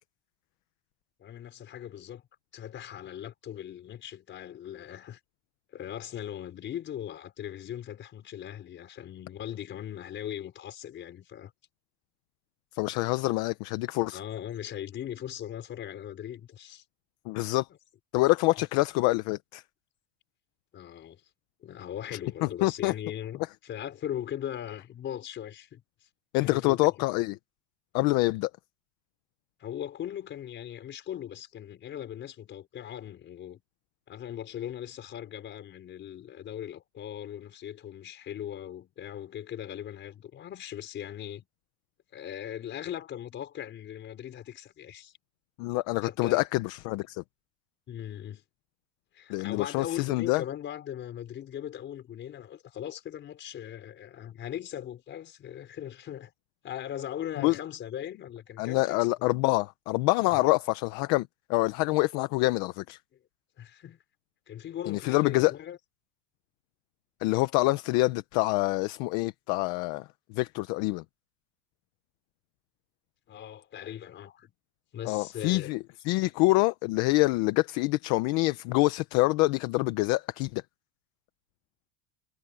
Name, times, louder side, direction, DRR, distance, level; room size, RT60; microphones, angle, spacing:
voice 1, 1.2-2.2 2.5-5.2 5.7-11.5 14.1-16.8 20.7-21.2 21.6-25.8 26.4-27.1 29.6-33.6 34.1-41.5 42.1-45.1 46.0-46.5 47.9-48.4 49.1-56.3 56.6-59.1 60.3-60.5 63.6-64.0 64.5-65.8 73.3-74.5 74.9-75.7, left 10 dB, 25° left, 4.9 m, -39 dB
voice 2, 12.7-14.2 17.3-17.7 18.1-19.6 22.1-22.9 26.3-27.4 27.9-28.5 45.6-47.2 49.3-50.4 57.4-57.6 58.6-63.0 64.9-65.5 67.2-71.0 75.1-75.8 76.0-80.6, left 21 dB, 40° left, 0.7 m, -26 dB
cardioid pair, 175°, 43 cm